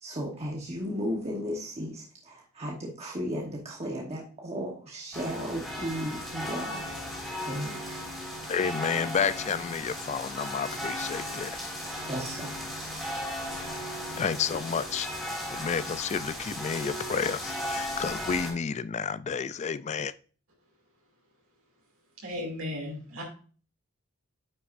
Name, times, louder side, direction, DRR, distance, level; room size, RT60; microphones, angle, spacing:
voice 1, 0.0-6.9 7.4-7.9 12.0-12.5, equal, 30° right, 1.2 m, -35 dB
sound 1, 5.1-18.5, equal, ahead, 2.9 m, -36 dB
voice 2, 8.5-11.6 14.2-15.1 15.5-20.1, left 6 dB, 30° left, 0.3 m, -30 dB
voice 3, 22.2-23.2, left 1 dB, 65° right, 2.6 m, -35 dB
9.4 x 5.8 x 2.5 m
head